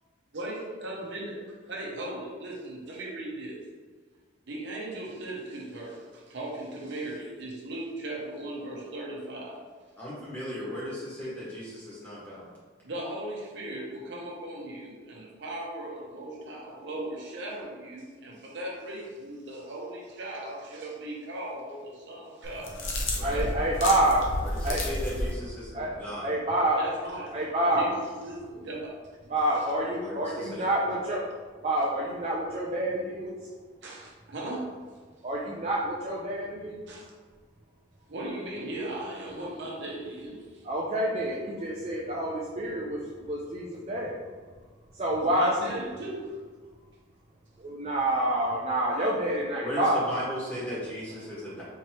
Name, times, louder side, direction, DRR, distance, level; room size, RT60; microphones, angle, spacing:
voice 1, 0.3-1.4 1.7-3.6 4.5-9.6 12.8-22.7 23.1-23.5 26.8-27.3 27.7-28.9 29.5-29.6 33.8-34.7 36.9-37.0 38.1-40.6 45.2-46.4, right 1 dB, 60° right, -3 dB, 0.8 m, -38 dB
voice 2, 10.0-12.5 23.1-23.4 24.4-26.3 30.0-30.8 49.6-51.6, equal, 10° left, -9 dB, 1.5 m, -36 dB
sound 1, 22.4-25.3, left 1 dB, 70° left, 0.8 m, -31 dB
voice 3, 23.2-24.2 24.6-24.8 25.7-25.9 26.2-26.8 27.3-27.9 29.3-31.3 31.6-33.3 35.2-36.9 40.6-44.1 44.9-45.8 47.6-50.0, right 1 dB, 30° right, -4 dB, 0.4 m, -27 dB
4.4 x 3.2 x 2.9 m, 1.5 s
head